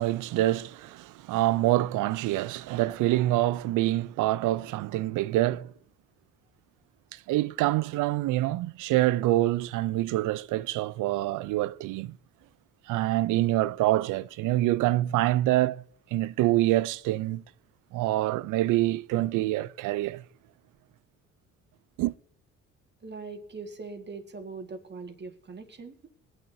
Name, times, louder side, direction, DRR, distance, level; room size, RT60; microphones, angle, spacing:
voice 1, 0.0-5.7 7.1-12.2 12.9-15.8 16.1-17.4 17.9-20.2 22.0-22.1, right 16 dB, 85° right, 0.5 m, -26 dB
voice 2, 23.0-26.1, right 4 dB, 35° right, 1.7 m, -41 dB
22.0 x 9.1 x 2.7 m
cardioid pair, 90°, 30 cm